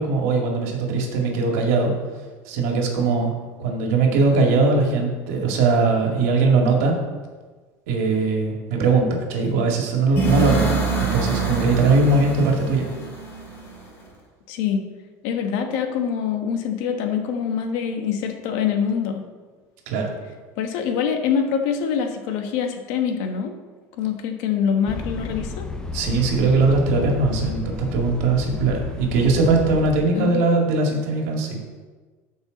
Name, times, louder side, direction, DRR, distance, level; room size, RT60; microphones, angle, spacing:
voice 1, 0.0-1.9 2.5-3.3 3.6-7.0 7.9-12.9 19.9-20.1 25.9-31.6, right 3 dB, 80° right, 1 dB, 2.2 m, -20 dB
sound 1, 10.2-14.1, right 4 dB, 25° left, 3.2 m, -25 dB
voice 2, 14.5-14.8 15.2-19.2 20.6-23.5 24.0-25.6 30.1-30.5, left 7 dB, 60° left, 5 dB, 1.2 m, -24 dB
sound 2, 24.9-30.0, left 4 dB, 10° left, 0.6 m, -32 dB
13.0 x 5.5 x 4.0 m, 1.4 s
cardioid pair, 165°, 8 cm